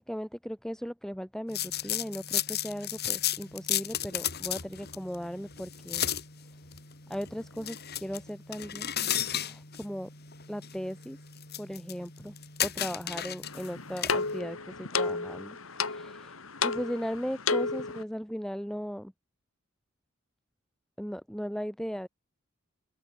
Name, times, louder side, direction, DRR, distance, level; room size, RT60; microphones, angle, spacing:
voice 1, 0.0-6.1 7.1-8.9 9.4-10.1 10.5-11.2 11.6-12.3 12.6-19.1 21.0-22.1, equal, 5° left, 7.2 m, -37 dB
sound 1, 1.5-14.4, left 11 dB, 50° left, 7.9 m, -35 dB
sound 2, 13.4-18.0, left 4 dB, 85° left, 3.3 m, -32 dB
open air
head